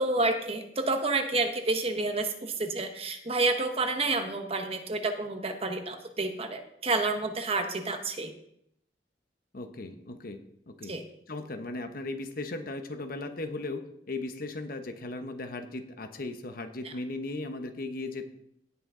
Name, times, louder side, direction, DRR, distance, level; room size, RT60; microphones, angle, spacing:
voice 1, 0.0-8.3 10.9-11.0 16.8-16.9, right 3 dB, 35° right, 6 dB, 1.1 m, -29 dB
voice 2, 9.5-10.4 10.7-10.9 11.3-18.3, left 2 dB, 55° left, 7 dB, 0.9 m, -37 dB
17.0 x 5.8 x 3.8 m, 0.74 s
head